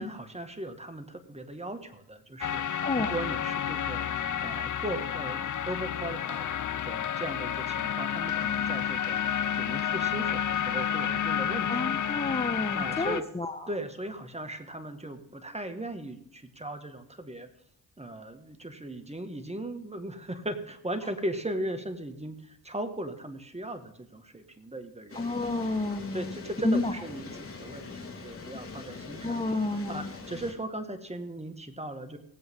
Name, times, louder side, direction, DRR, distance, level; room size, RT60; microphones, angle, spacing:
voice 1, 0.0-11.8 12.7-13.3 13.7-17.5 18.0-25.2 25.6-25.7 26.1-29.4 29.9-32.2, right 1 dB, 15° right, 7 dB, 1.8 m, -38 dB
sound 1, 2.4-13.2, left 9 dB, 50° left, 0.7 m, -30 dB
voice 2, 2.8-3.1 11.7-13.7 25.1-26.3 26.6-26.9 29.2-30.1, left 2 dB, 15° left, 7 dB, 0.9 m, -30 dB
sound 2, 25.1-30.5, left 4 dB, 35° left, 3.5 m, -43 dB
19.0 x 7.9 x 3.8 m, 0.74 s
supercardioid pair, 55°, 40 cm